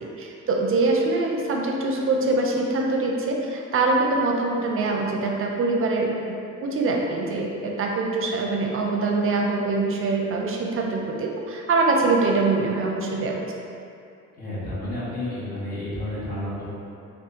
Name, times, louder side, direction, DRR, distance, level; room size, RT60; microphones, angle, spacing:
voice 1, 0.0-6.3 6.6-13.4, right 3 dB, 45° right, 0 dB, 0.5 m, -24 dB
voice 2, 14.3-16.7, left 1 dB, 30° left, -10 dB, 1.1 m, -31 dB
2.7 x 2.4 x 3.7 m, 2.5 s
cardioid pair, 90°, 30 cm